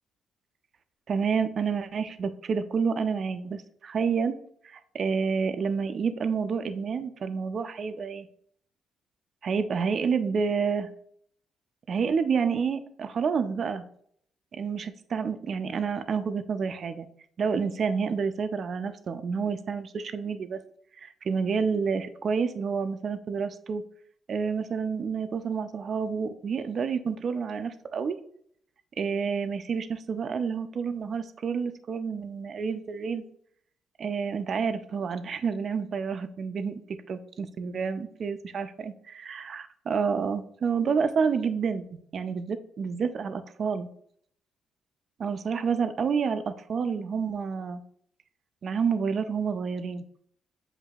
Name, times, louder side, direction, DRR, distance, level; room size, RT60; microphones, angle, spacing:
voice 1, 1.1-4.3 4.6-8.3 9.4-10.9 11.9-13.8 14.5-17.1 17.4-20.6 21.0-23.8 24.3-28.2 29.0-33.2 34.0-36.8 37.1-43.9 45.2-47.8 48.6-50.0, right 5 dB, 55° right, 10 dB, 0.4 m, -29 dB
7.6 x 2.6 x 2.3 m, 0.65 s
cardioid pair, 90°, 0 cm